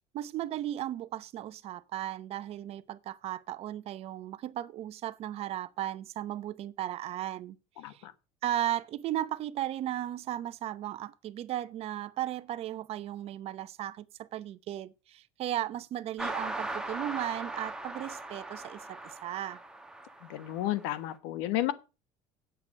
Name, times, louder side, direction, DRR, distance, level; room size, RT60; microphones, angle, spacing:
voice 1, 0.1-7.6 7.8-8.0 8.4-19.6, right 12 dB, 45° right, 0.8 m, -36 dB
voice 2, 7.8-8.1 20.2-21.7, left 14 dB, 90° left, 1.2 m, -32 dB
sound 1, 16.2-21.0, right 2 dB, 5° right, 1.3 m, -39 dB
8.7 x 7.7 x 6.4 m
cardioid pair, 140°, 14 cm